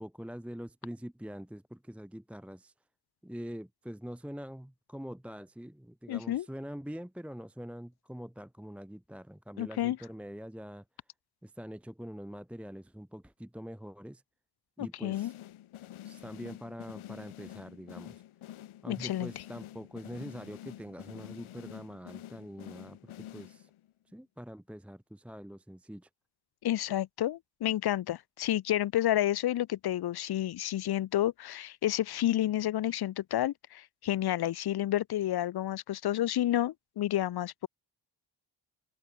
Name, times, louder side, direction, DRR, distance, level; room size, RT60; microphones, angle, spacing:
voice 1, 0.0-2.7 3.2-10.8 11.4-14.2 14.8-15.3 16.0-18.2 18.8-23.7 24.1-26.1, equal, 5° right, 1.0 m, -44 dB
voice 2, 6.1-6.5 9.6-10.0 14.8-15.3 18.9-19.3 26.6-37.7, left 13 dB, 55° left, 0.6 m, -30 dB
sound 1, 15.1-23.9, left 13 dB, 85° left, 1.8 m, -48 dB
open air
cardioid pair, 75°, 48 cm